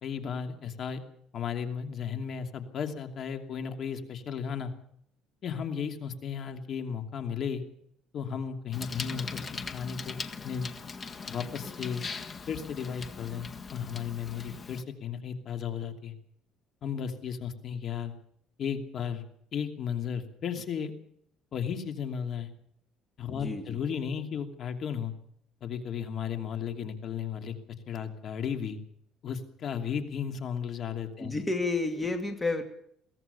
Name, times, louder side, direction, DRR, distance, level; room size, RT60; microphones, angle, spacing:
voice 1, 0.0-1.0 1.3-4.7 5.4-7.6 8.1-10.7 11.3-12.0 12.5-16.1 16.8-18.1 18.6-19.2 19.5-20.9 21.5-22.5 23.2-25.1 25.6-27.5 27.9-28.8 29.2-31.3, left 7 dB, 50° left, 6 dB, 2.8 m, -34 dB
Bicycle, 8.7-14.8, left 5 dB, 30° left, 1.7 m, -40 dB
voice 2, 23.3-23.8 31.2-32.6, left 3 dB, 15° left, 6 dB, 2.3 m, -31 dB
22.5 x 17.0 x 7.0 m, 0.68 s
cardioid pair, 120°, 0 cm